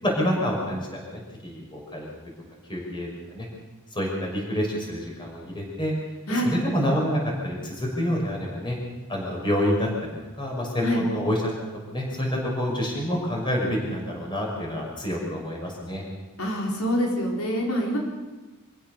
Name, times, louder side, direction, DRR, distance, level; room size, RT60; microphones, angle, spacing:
voice 1, 0.0-2.1 2.7-3.5 3.9-5.9 6.4-8.8 9.1-10.1 10.4-11.4 11.9-16.0, equal, 20° left, -1 dB, 5.9 m, -27 dB
voice 2, 16.4-18.0, equal, 85° left, -1 dB, 4.4 m, -25 dB
25.5 x 16.0 x 6.7 m, 1.2 s
head